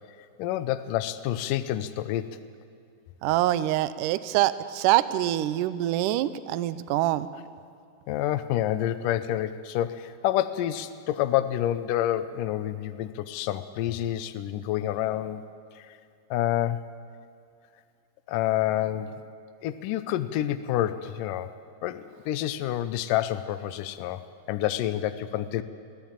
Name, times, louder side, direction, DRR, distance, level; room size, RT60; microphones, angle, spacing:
voice 1, 0.4-2.4 8.1-15.4 15.8-16.0 16.3-16.8 18.3-19.2 19.6-21.5 21.8-25.6, left 12 dB, 75° left, 10 dB, 2.0 m, -28 dB
voice 2, 3.2-7.3, right 14 dB, 80° right, 15 dB, 1.9 m, -25 dB
25.0 x 16.5 x 8.9 m, 2.5 s
omnidirectional pair, 4.5 m